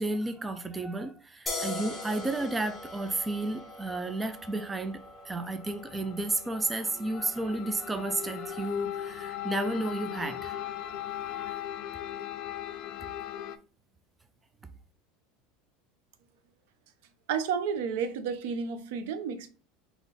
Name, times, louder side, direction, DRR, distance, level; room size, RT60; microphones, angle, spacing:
voice 1, 0.0-5.0 5.2-11.6, right 2 dB, 15° right, 0.4 m, -32 dB
sound 1, 1.5-8.8, left 2 dB, 10° left, 1.4 m, -42 dB
sound 2, 5.0-13.6, left 11 dB, 60° left, 0.4 m, -39 dB
voice 2, 17.3-19.5, right 6 dB, 75° right, 0.6 m, -31 dB
3.9 x 2.9 x 3.9 m
supercardioid pair, 135°, 0 cm